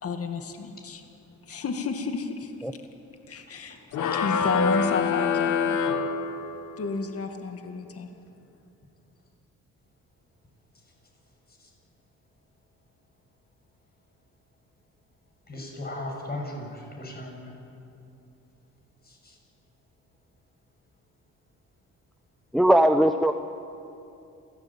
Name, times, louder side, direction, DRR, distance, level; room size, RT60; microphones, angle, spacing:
voice 1, 0.0-1.0 1.5-2.7 3.3-3.8 4.2-5.8 6.8-8.1, left 4 dB, 50° left, 5 dB, 2.2 m, -31 dB
sound 1, 3.9-6.8, left 6 dB, 75° left, 1.4 m, -25 dB
voice 2, 15.5-17.5 19.0-19.4, left 1 dB, 30° left, 0 dB, 7.4 m, -37 dB
voice 3, 22.5-23.3, right 1 dB, ahead, 7 dB, 1.0 m, -19 dB
28.0 x 17.5 x 9.0 m, 2.7 s
cardioid pair, 90°, 30 cm